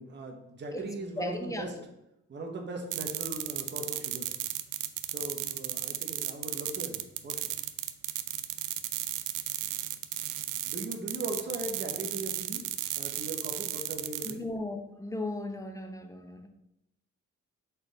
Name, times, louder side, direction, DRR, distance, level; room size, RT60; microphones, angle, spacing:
voice 1, 0.0-1.7 2.3-4.3 5.1-7.5 10.7-12.6 13.0-14.4, right 2 dB, 35° right, 2 dB, 1.1 m, -39 dB
voice 2, 1.2-1.7 14.2-16.5, left 1 dB, 10° left, 6 dB, 0.8 m, -36 dB
sound 1, 2.9-14.3, right 13 dB, 85° right, 0.5 m, -34 dB
5.7 x 4.0 x 4.0 m, 0.85 s
cardioid pair, 90°, 30 cm